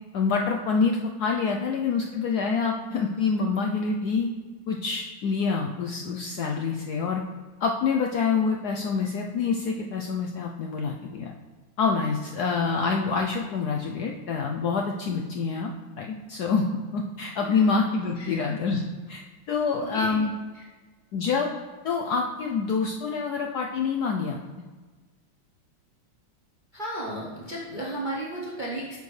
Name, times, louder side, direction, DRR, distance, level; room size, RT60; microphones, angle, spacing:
voice 1, 0.1-4.3 4.7-7.2 7.6-11.3 11.8-15.7 16.0-16.6 16.9-18.8 19.1-19.2 19.5-20.3 21.1-21.5 21.8-24.4, left 5 dB, 70° left, 1 dB, 0.9 m, -26 dB
voice 2, 19.8-20.2 20.5-20.7 26.7-29.0, right 1 dB, 45° right, -4 dB, 0.6 m, -34 dB
8.1 x 6.6 x 3.2 m, 1.4 s
omnidirectional pair, 2.2 m